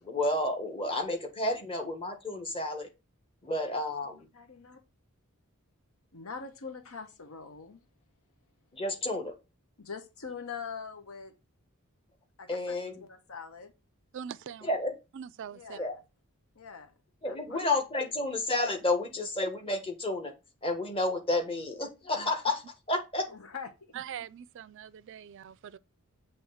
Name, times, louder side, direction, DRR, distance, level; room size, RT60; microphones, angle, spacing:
voice 1, 0.0-2.9 3.4-4.3 8.7-9.3 12.5-12.9 14.6-14.9 15.8-16.0 17.2-20.3 20.6-23.3, left 2 dB, 25° left, 1.4 m, -31 dB
voice 2, 4.3-4.8 6.1-7.8 9.8-11.3 12.4-13.7 15.5-15.9 16.5-16.9 17.2-17.6 23.3-23.9, left 5 dB, 80° left, 1.0 m, -43 dB
voice 3, 14.1-14.7 15.1-15.8 22.2-22.3 23.9-25.8, right 8 dB, 60° right, 0.3 m, -42 dB
7.8 x 3.4 x 5.6 m
head